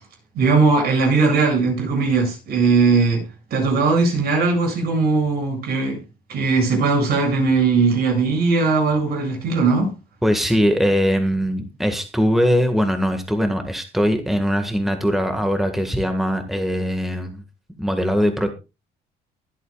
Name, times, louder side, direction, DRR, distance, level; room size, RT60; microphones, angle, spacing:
voice 1, 0.4-3.2 3.5-6.0 6.3-9.9, right 4 dB, 65° right, 7.9 m, -19 dB
voice 2, 10.2-17.4 17.8-18.5, equal, ahead, 1.7 m, -21 dB
23.0 x 8.3 x 2.4 m
cardioid pair, 110°, 17 cm